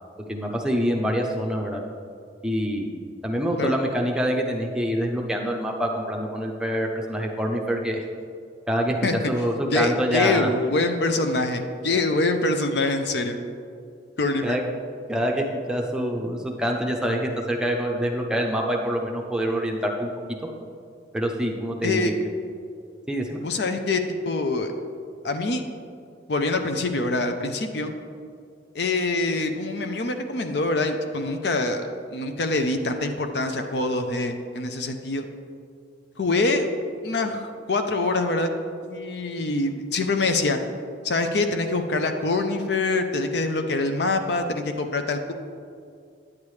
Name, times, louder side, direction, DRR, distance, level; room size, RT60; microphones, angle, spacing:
voice 1, 0.3-1.8 2.4-8.1 8.7-9.0 9.3-10.5 14.4-14.6 15.1-20.4 21.1-22.1 23.1-23.4, equal, 5° right, 0 dB, 0.6 m, -26 dB
voice 2, 9.7-13.4 14.2-14.6 21.8-22.1 23.4-24.7 25.2-25.6 26.3-27.9 28.7-31.8 32.1-35.3 36.2-36.7 37.0-38.5 38.8-40.6 41.0-45.3, left 2 dB, 60° left, 6 dB, 0.6 m, -25 dB
9.6 x 8.6 x 3.2 m, 2.3 s
head